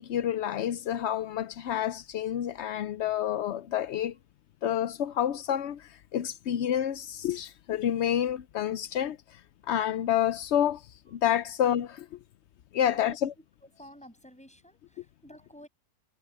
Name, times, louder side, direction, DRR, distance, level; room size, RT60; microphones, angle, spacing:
voice 1, 0.0-4.1 4.6-9.4 9.7-12.1 12.7-13.3, left 10 dB, 75° left, 0.6 m, -29 dB
voice 2, 12.8-15.7, equal, 5° left, 7.7 m, -52 dB
omnidirectional pair, 1.8 m